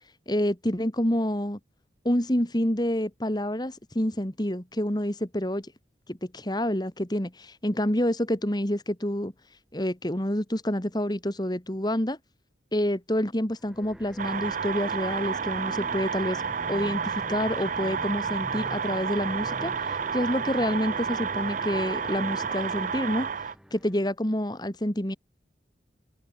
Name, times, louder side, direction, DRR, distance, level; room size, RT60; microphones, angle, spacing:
voice 1, 0.3-1.6 2.0-5.7 6.1-9.3 9.7-12.2 12.7-16.4 16.7-23.3 23.7-25.2, equal, 20° left, 2.4 m, -28 dB
sound 1, 13.6-24.1, equal, 5° right, 4.1 m, -44 dB
sound 2, 14.2-23.5, right 6 dB, 45° right, 0.5 m, -30 dB
open air
head